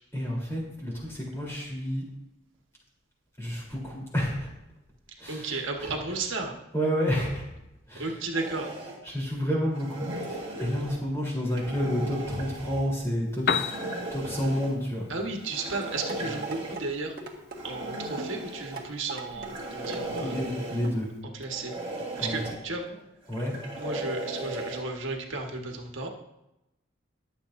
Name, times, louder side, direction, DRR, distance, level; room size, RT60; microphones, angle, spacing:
voice 1, 0.1-2.1 3.4-4.5 5.2-5.9 6.7-7.5 7.9-8.2 9.0-13.8 14.1-15.1 19.3-19.7 20.1-21.1 22.2-22.4 23.3-23.6, equal, 15° left, -4 dB, 3.5 m, -30 dB
voice 2, 5.3-6.5 8.0-8.7 15.1-17.1 17.6-20.4 21.4-21.7 22.2-22.9 23.8-26.1, right 3 dB, 75° right, 1 dB, 1.4 m, -33 dB
sound 1, 8.3-9.0 9.7-11.0 11.5-12.8 13.6-14.7 15.4-16.8 17.5-18.8 19.4-20.9 21.5-22.6 23.2-24.8, right 1 dB, 25° right, 2.6 m, -37 dB
Piano, 13.2-21.2, left 6 dB, 50° left, 0.5 m, -38 dB
sound 2, 16.1-16.9 17.2-17.6 18.2-18.3 18.8-19.5 19.8-20.3 20.8-21.0 21.4-21.5, right 3 dB, 50° right, 1.6 m, -38 dB
21.5 x 7.4 x 2.6 m, 0.90 s
head